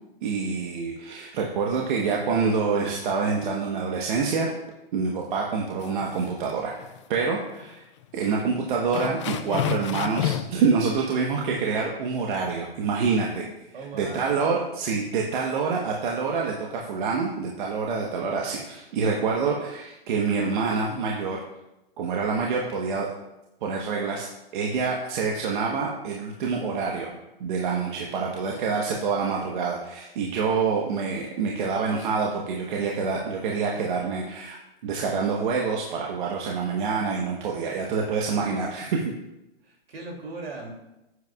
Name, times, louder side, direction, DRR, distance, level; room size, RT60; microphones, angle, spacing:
voice 1, 0.2-4.5 4.9-6.8 7.1-7.9 8.1-13.5 13.9-21.4 22.0-23.1 23.6-24.3 24.5-27.1 27.4-34.6 34.8-39.1, right 5 dB, 55° right, -1 dB, 1.2 m, -26 dB
sound 1, 5.8-6.5 6.8-7.0 7.6-7.7 8.0-8.1 8.9-10.6, left 10 dB, 30° left, 0.4 m, -29 dB
voice 2, 13.7-14.4 37.6-38.6 39.6-40.7, right 3 dB, 75° right, 1 dB, 2.8 m, -40 dB
10.0 x 8.1 x 2.4 m, 0.93 s
hypercardioid pair, 140°, 30 cm